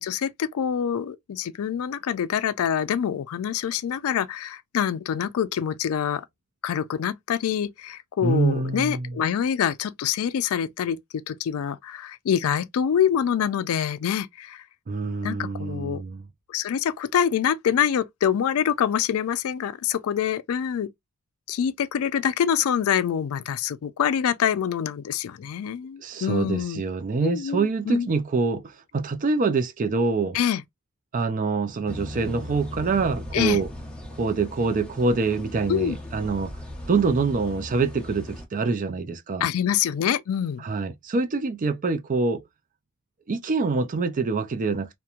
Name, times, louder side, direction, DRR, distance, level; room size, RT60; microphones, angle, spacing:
voice 1, 0.0-6.2 6.6-14.6 15.2-16.0 16.5-20.9 21.5-26.8 27.2-28.1 30.3-30.6 33.3-33.6 35.7-36.0 39.4-40.7, left 8 dB, 70° left, 0.3 m, -25 dB
voice 2, 8.2-9.1 14.9-16.2 26.0-30.4 31.1-33.7 34.2-36.5 36.9-39.5 40.6-42.5 43.3-45.0, right 4 dB, 35° right, 0.4 m, -25 dB
sound 1, 31.8-38.5, left 1 dB, 5° left, 0.9 m, -38 dB
2.9 x 2.1 x 2.3 m
head